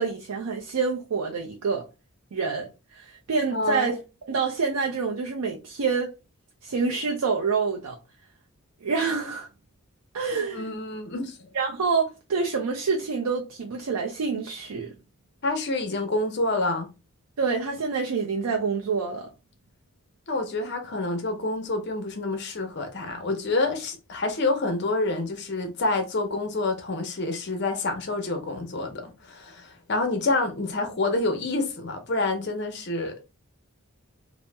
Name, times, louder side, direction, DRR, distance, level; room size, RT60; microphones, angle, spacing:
voice 1, 0.0-1.8 2.3-4.0 4.3-6.1 6.6-8.0 8.8-9.5 10.1-10.7 11.5-14.9 17.4-19.3, right 5 dB, 90° right, 0.5 m, -27 dB
voice 2, 3.5-3.9 10.3-11.5 15.4-16.9 20.3-33.1, left 2 dB, 50° left, 0.6 m, -28 dB
2.9 x 2.0 x 3.3 m
head